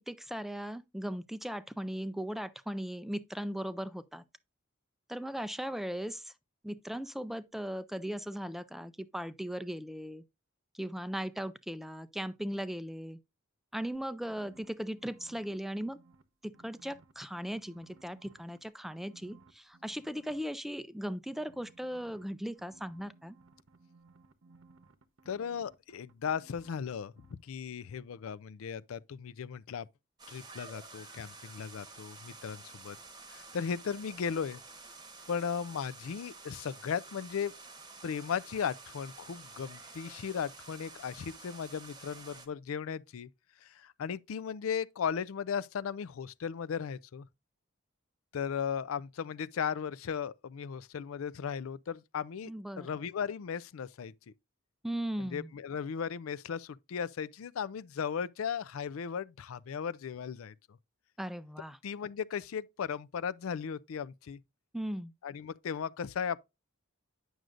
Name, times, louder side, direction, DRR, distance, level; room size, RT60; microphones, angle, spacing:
voice 1, 0.1-4.2 5.1-6.3 6.6-10.2 10.7-13.2 13.7-16.0 16.4-23.4 52.5-52.9 54.8-55.5 61.2-61.8 64.7-65.1, equal, ahead, 0.3 m, -38 dB
sound 1, 13.9-16.2 16.5-18.6 18.9-20.4 21.3-26.9 27.2-27.3, right 3 dB, 70° right, 0.9 m, -60 dB
voice 2, 25.3-27.1 27.4-29.9 30.3-33.0 33.3-34.6 35.3-37.5 38.0-43.3 43.6-47.3 48.3-54.1 55.2-60.5 61.8-64.4 65.2-66.4, left 7 dB, 85° left, 0.4 m, -36 dB
sound 2, 30.2-42.5, right 3 dB, 20° right, 1.0 m, -50 dB
9.2 x 6.3 x 2.5 m
head